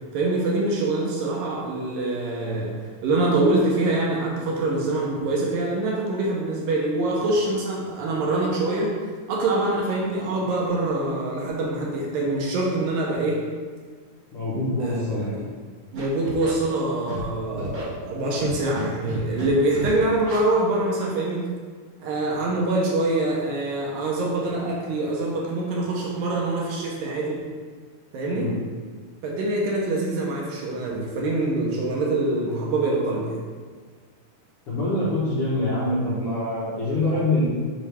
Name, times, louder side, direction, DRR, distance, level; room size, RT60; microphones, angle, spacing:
voice 1, 0.1-2.8 3.0-9.0 9.3-13.4 14.8-15.0 15.3-15.4 15.9-21.4 22.0-27.4 28.1-28.5 29.2-33.4, right 2 dB, 75° right, -3 dB, 2.4 m, -24 dB
voice 2, 14.3-15.3 28.3-28.5 34.7-37.5, left 1 dB, 65° left, -10 dB, 1.4 m, -25 dB
Scratching (performance technique), 15.9-16.5 17.1-17.2 17.6-17.8 18.4-18.8 19.1-19.5 19.7-19.9 20.2-20.4, right 1 dB, 50° right, 2.2 m, -33 dB
6.6 x 5.3 x 3.4 m, 1.6 s
omnidirectional pair, 4.5 m